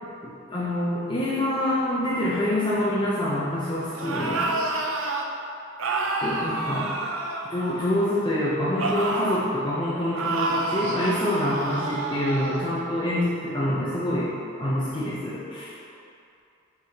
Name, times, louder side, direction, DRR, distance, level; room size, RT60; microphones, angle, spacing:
voice 1, 0.5-4.5 6.0-6.9 7.5-14.3 14.6-15.7, left 1 dB, 25° left, -8 dB, 0.7 m, -26 dB
sound 1, 3.9-5.3 5.8-8.1 8.8-9.5 10.1-12.6, right 2 dB, 80° right, 0.6 m, -29 dB
6.3 x 6.2 x 2.9 m, 2.6 s
head